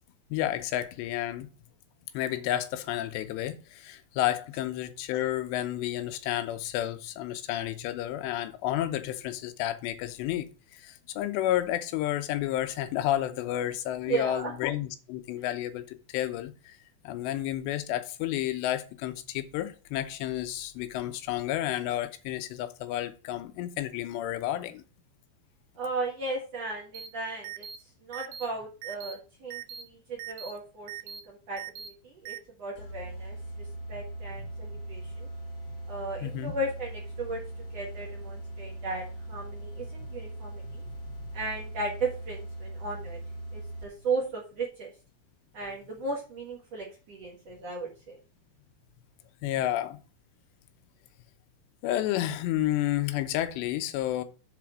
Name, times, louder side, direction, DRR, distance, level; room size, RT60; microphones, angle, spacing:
voice 1, 0.3-1.5 2.1-16.8 17.0-24.8 34.4-34.5 36.2-36.5 40.0-40.1 40.6-41.4 49.4-50.0 51.8-54.2, left 13 dB, 85° left, 2.9 m, -31 dB
voice 2, 14.1-14.5 25.8-27.7 28.0-35.3 35.9-37.4 37.7-40.6 41.3-43.2 43.5-44.9 45.5-48.2, right 3 dB, 55° right, 2.0 m, -36 dB
sound 1, 26.9-27.1 27.4-27.8 28.1-28.5 28.8-29.1 29.5-29.8 30.2-30.5 30.9-31.2 31.6-31.9 32.3-32.4, right 9 dB, 85° right, 2.0 m, -40 dB
sound 2, 32.8-44.1, right 1 dB, 65° left, 1.5 m, -40 dB
7.6 x 4.3 x 6.1 m
omnidirectional pair, 4.9 m